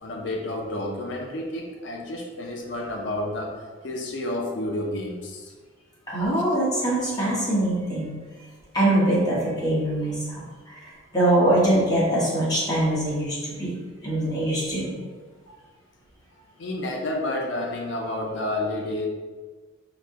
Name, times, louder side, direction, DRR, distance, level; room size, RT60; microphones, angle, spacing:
voice 1, 0.0-5.5 16.6-19.1, left 1 dB, 60° left, 2 dB, 0.5 m, -30 dB
voice 2, 6.1-8.1 8.7-13.8 14.0-14.9, right 1 dB, 20° left, -7 dB, 0.9 m, -23 dB
4.1 x 2.1 x 3.5 m, 1.4 s
head